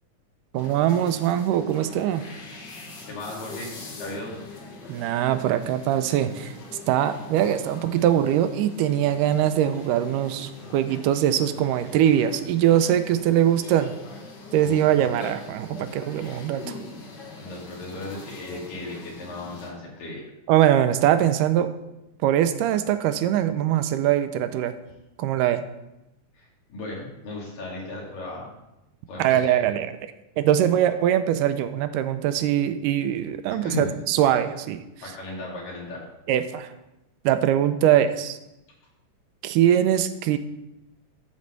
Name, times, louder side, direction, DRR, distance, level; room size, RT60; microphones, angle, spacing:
sound 1, 0.5-19.7, left 3 dB, 50° left, 1.4 m, -42 dB
voice 1, 0.5-2.2 4.9-6.5 6.9-13.9 14.5-16.8 20.5-21.7 22.2-24.7 25.2-25.6 29.2-29.9 30.4-34.8 36.3-36.7 37.3-38.4 39.4-40.4, right 11 dB, 85° right, 10 dB, 2.2 m, -22 dB
voice 2, 3.0-3.7 4.0-4.3 14.6-14.9 17.4-20.3 26.3-28.5 29.1-29.5 33.6-34.0 35.0-36.0, left 2 dB, 85° left, -3 dB, 4.3 m, -36 dB
12.5 x 4.3 x 6.5 m, 0.93 s
omnidirectional pair, 3.8 m